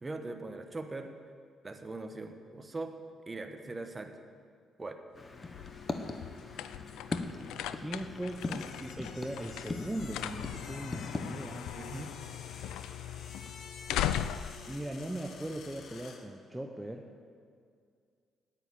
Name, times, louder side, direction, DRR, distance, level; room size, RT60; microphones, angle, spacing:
voice 1, 0.0-1.1 1.6-2.9 3.3-4.1 4.8-5.0 11.7-12.1, right 2 dB, 25° right, 6 dB, 1.2 m, -40 dB
sound 1, 5.2-15.9, left 11 dB, 90° left, 0.4 m, -39 dB
sound 2, 5.2-11.4, left 3 dB, 30° left, 1.1 m, -41 dB
voice 2, 7.8-11.8 13.9-17.1, right 1 dB, 10° right, 2 dB, 0.9 m, -40 dB
sound 3, 8.3-16.3, left 5 dB, 70° left, 1.4 m, -50 dB
10.5 x 9.7 x 8.5 m, 2.2 s
cardioid pair, 90°, 0 cm